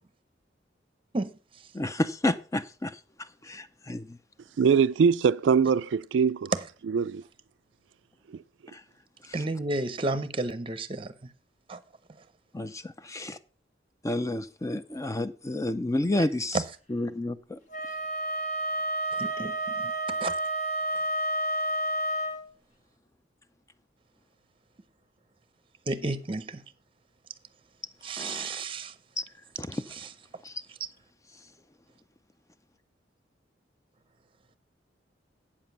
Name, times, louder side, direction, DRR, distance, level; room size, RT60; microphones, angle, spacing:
voice 1, 1.1-1.7 9.3-11.3 11.7-11.8 16.5-16.6 19.1-20.3 25.9-26.6 28.0-28.9 29.9-30.1 30.8-30.9, right 2 dB, 30° right, 0.7 m, -32 dB
voice 2, 1.7-4.2 8.7-8.8 9.2-9.4 12.5-13.4 14.0-16.6 16.9-17.6 28.2-28.6 29.2-29.3 29.6-29.8 30.4-30.6, left 1 dB, 15° left, 0.5 m, -31 dB
voice 3, 4.6-6.5 6.9-7.2 8.3-8.4, right 6 dB, 75° right, 0.4 m, -23 dB
Wind instrument woodwind instrument, 17.7-22.4, right 1 dB, 40° left, 1.4 m, -30 dB
8.6 x 7.3 x 5.7 m
head